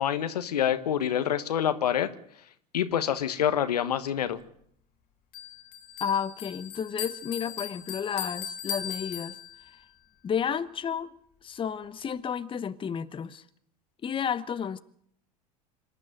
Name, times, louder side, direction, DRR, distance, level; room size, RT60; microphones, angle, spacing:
voice 1, 0.0-2.1 2.7-4.4, left 9 dB, 80° left, 1.3 m, -26 dB
Bell, 5.3-9.8, left 9 dB, 45° left, 2.4 m, -38 dB
voice 2, 6.0-9.4 10.2-11.1 11.4-13.4 14.0-14.8, left 7 dB, 25° left, 1.0 m, -31 dB
26.0 x 12.0 x 9.0 m
hypercardioid pair, 80°, 20 cm